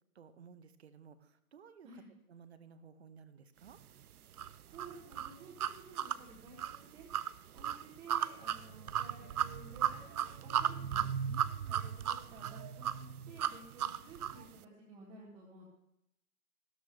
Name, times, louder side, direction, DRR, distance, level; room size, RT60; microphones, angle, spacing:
voice 1, 0.1-2.0 2.3-3.8 11.3-11.8, right 6 dB, 45° right, 12 dB, 0.9 m, -56 dB
sound 1, 4.4-14.4, right 9 dB, 75° right, 0.6 m, -36 dB
voice 2, 4.7-7.1 7.5-11.1 11.7-15.7, right 3 dB, 10° right, -5 dB, 1.2 m, -54 dB
13.0 x 13.0 x 3.2 m, 0.83 s
hypercardioid pair, 150°, 46 cm